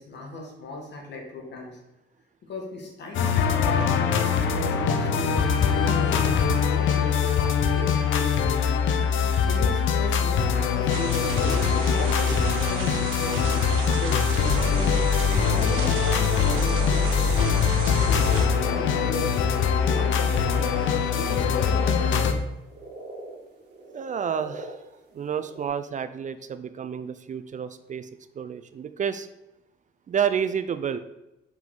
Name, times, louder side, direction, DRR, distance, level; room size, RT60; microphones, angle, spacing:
voice 1, 0.0-1.8 2.4-8.7 9.5-14.7 15.5-19.4 19.9-22.0, left 2 dB, 60° left, 0 dB, 1.9 m, -37 dB
sound 1, 3.1-22.3, left 6 dB, 75° left, 0.7 m, -23 dB
sound 2, 10.9-18.5, right 4 dB, 75° right, 1.1 m, -33 dB
sound 3, 14.6-25.7, right 2 dB, 60° right, 1.7 m, -42 dB
voice 2, 23.9-24.8 25.1-28.1 28.3-29.3 30.1-31.0, right 7 dB, 40° right, 11 dB, 0.4 m, -30 dB
5.5 x 4.8 x 3.8 m, 0.93 s
cardioid pair, 90°, 20 cm